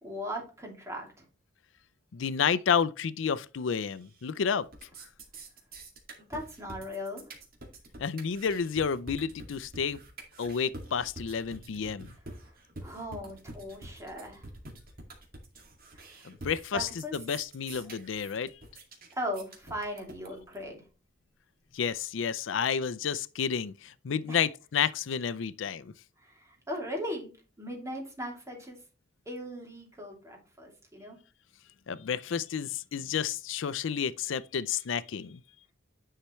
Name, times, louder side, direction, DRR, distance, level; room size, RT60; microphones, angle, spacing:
voice 1, 0.0-1.2 6.3-7.3 12.8-14.5 15.9-16.3 16.7-17.1 19.1-20.8 24.3-24.4 26.2-27.3 27.6-28.8 29.3-31.2, equal, 15° right, 2.7 m, -38 dB
voice 2, 2.1-4.7 8.0-10.0 10.4-12.1 16.2-18.5 21.7-25.9 31.9-35.4, left 7 dB, 80° left, 0.5 m, -30 dB
sound 1, 3.9-4.4 4.6-20.6, right 2 dB, 50° right, 2.2 m, -46 dB
10.0 x 5.7 x 3.1 m
head